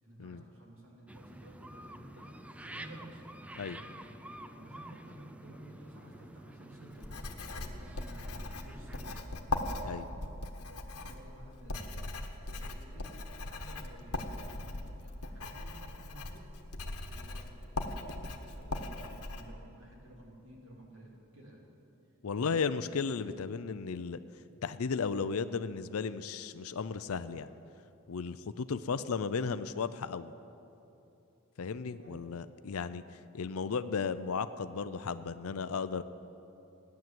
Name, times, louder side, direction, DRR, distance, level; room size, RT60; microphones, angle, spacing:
voice 1, 0.0-3.3 3.7-3.9 4.4-8.3 8.5-9.3 10.0-10.3 10.6-12.1 12.5-16.5 17.1-18.0 18.3-21.6 22.3-22.5 31.9-32.5, right 1 dB, 60° right, -2 dB, 3.2 m, -54 dB
sound 1, 1.1-9.2, right 1 dB, 5° right, 0.4 m, -49 dB
Writing, 7.0-19.4, left 2 dB, 90° left, 1.3 m, -39 dB
voice 2, 22.2-24.2 24.6-27.5 28.1-30.3 31.6-36.0, left 5 dB, 75° left, 12 dB, 0.5 m, -35 dB
16.5 x 10.5 x 7.7 m, 2.8 s
head